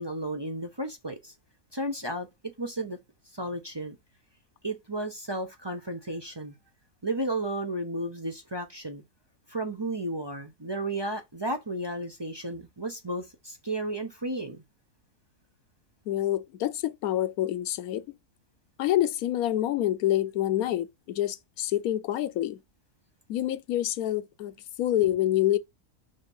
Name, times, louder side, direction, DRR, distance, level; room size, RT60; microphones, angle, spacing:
voice 1, 0.0-1.3 1.7-2.3 2.6-3.0 3.3-4.0 4.6-6.5 7.0-9.0 9.5-14.6, right 1 dB, 20° right, 0.7 m, -33 dB
voice 2, 16.1-18.0 18.8-22.6 23.3-25.6, left 13 dB, 85° left, 1.1 m, -27 dB
5.5 x 4.3 x 5.4 m
omnidirectional pair, 1.5 m